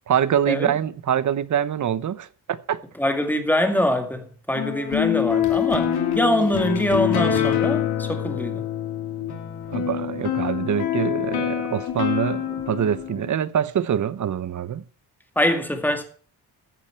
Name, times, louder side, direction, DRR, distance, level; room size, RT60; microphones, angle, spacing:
voice 1, 0.1-2.8 9.7-14.8, right 9 dB, 50° right, 0.8 m, -25 dB
voice 2, 3.0-8.6 15.4-16.0, left 1 dB, 5° left, 2.1 m, -24 dB
sound 1, 4.5-13.3, left 10 dB, 80° left, 2.8 m, -25 dB
15.0 x 8.7 x 4.5 m
wide cardioid pair, 145°, 39 cm